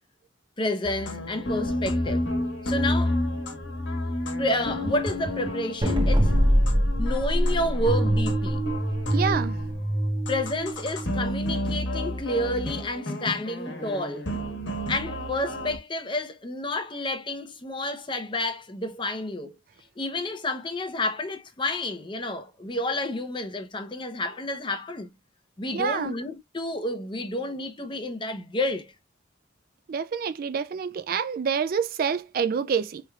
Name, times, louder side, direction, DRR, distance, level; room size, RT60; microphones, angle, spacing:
voice 1, 0.6-2.3 2.6-3.2 4.4-6.3 7.0-8.6 10.3-14.3 14.9-19.6 20.0-25.1 25.6-28.9, left 1 dB, 25° left, 0.6 m, -30 dB
sound 1, 0.8-15.8, equal, 65° left, 1.2 m, -29 dB
sound 2, 5.8-8.5, equal, 25° right, 0.8 m, -22 dB
voice 2, 9.1-9.6 25.7-26.1 29.9-33.0, right 6 dB, 50° right, 0.3 m, -27 dB
4.3 x 3.2 x 2.3 m
head